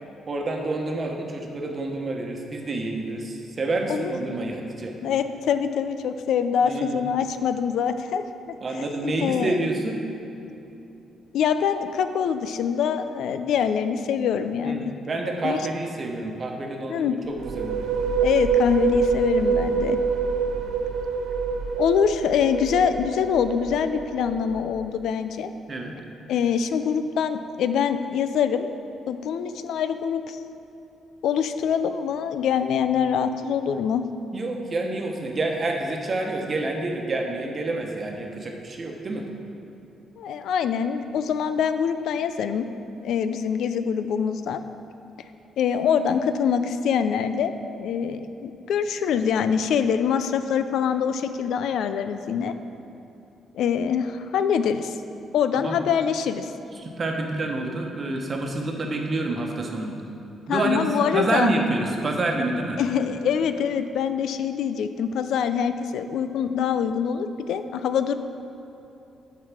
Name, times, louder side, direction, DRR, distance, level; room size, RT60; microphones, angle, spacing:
voice 1, 0.3-4.9 6.6-7.0 8.6-10.0 14.6-17.9 25.7-25.9 34.3-39.2 55.5-55.8 56.7-60.0 60.5-62.8, right 2 dB, 40° right, 2 dB, 1.1 m, -28 dB
voice 2, 5.0-8.6 9.0-9.6 11.3-14.9 15.4-15.6 16.9-17.2 18.2-20.0 21.8-25.5 26.3-28.7 29.1-30.4 31.2-34.0 40.2-42.7 43.0-44.6 45.6-52.5 53.5-55.0 55.3-56.5 60.5-61.5 62.8-68.1, left 7 dB, 75° left, 10 dB, 0.4 m, -24 dB
sound 1, 17.2-24.9, right 5 dB, 80° right, 0.6 m, -26 dB
8.0 x 4.7 x 6.0 m, 2.9 s
cardioid pair, 90°, 0 cm